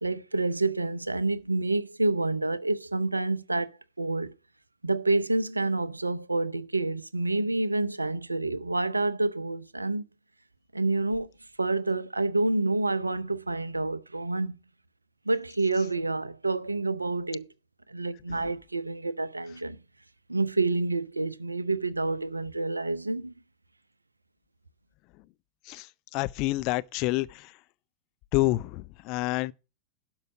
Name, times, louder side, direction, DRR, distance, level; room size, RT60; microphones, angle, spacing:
voice 1, 0.0-4.3 4.8-10.0 10.7-11.3 11.6-14.6 15.3-17.5 17.9-19.8 20.3-23.3, right 2 dB, 80° right, 0.5 m, -28 dB
voice 2, 26.1-27.5 28.3-29.5, left 19 dB, 40° left, 0.5 m, -28 dB
12.0 x 4.6 x 7.4 m
figure-of-eight pair, 90°, 0 cm